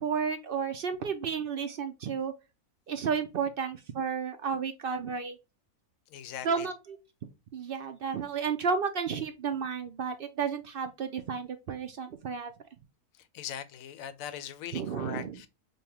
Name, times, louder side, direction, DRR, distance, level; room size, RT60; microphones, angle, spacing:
voice 1, 0.0-2.3 2.9-5.4 6.4-7.0 7.5-12.5 14.7-15.4, right 6 dB, 65° right, 0.5 m, -32 dB
voice 2, 6.1-6.7 13.1-15.5, left 10 dB, 80° left, 1.0 m, -41 dB
5.4 x 2.2 x 2.8 m
omnidirectional pair, 1.5 m